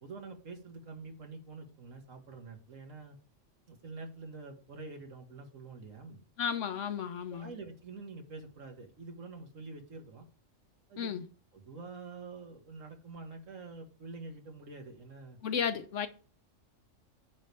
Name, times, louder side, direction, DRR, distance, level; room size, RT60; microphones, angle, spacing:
voice 1, 0.0-3.2 3.7-6.2 7.3-10.3 10.9-11.2 11.5-15.4, right 3 dB, 80° right, 1.9 m, -46 dB
voice 2, 6.4-7.5 11.0-11.3 15.4-16.1, left 7 dB, 70° left, 1.2 m, -33 dB
9.4 x 3.2 x 6.8 m
omnidirectional pair, 1.3 m